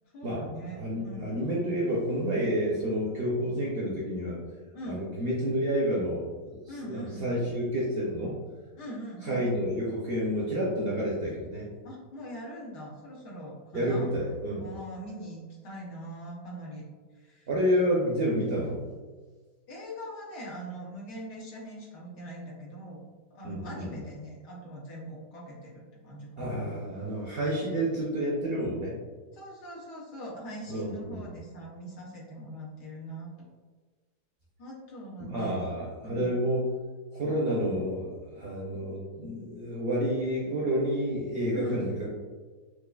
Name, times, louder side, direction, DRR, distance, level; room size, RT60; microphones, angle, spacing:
voice 1, 0.1-1.3 4.7-5.0 6.7-7.3 8.8-9.4 11.8-14.1 14.6-16.9 17.2-17.5 19.7-23.0 23.3-26.8 29.3-33.3 34.6-35.6 36.0-36.3 41.5-41.9, right 1 dB, 85° left, -4 dB, 1.5 m, -42 dB
voice 2, 0.7-4.4 4.9-8.3 9.2-11.7 13.7-14.8 17.5-18.8 23.4-23.9 26.4-28.9 30.7-31.2 35.2-36.7 37.1-42.1, equal, 55° right, -6 dB, 0.6 m, -29 dB
4.6 x 2.4 x 2.2 m, 1.4 s
omnidirectional pair, 1.7 m